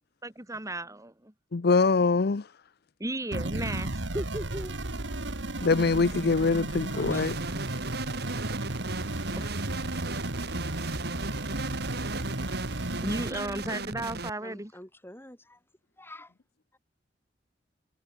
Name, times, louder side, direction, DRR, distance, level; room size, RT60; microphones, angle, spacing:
voice 1, 0.2-1.3 3.0-5.0 8.7-8.9 9.3-9.6 13.0-14.7, right 1 dB, 20° right, 3.2 m, -35 dB
voice 2, 1.5-2.5 5.6-7.3, left 4 dB, 60° left, 0.6 m, -23 dB
sound 1, 3.3-13.3, right 2 dB, 80° right, 2.4 m, -34 dB
sound 2, 7.1-14.3, right 3 dB, 60° right, 5.2 m, -37 dB
voice 3, 14.4-15.6 16.0-16.3, left 1 dB, 15° left, 7.7 m, -44 dB
head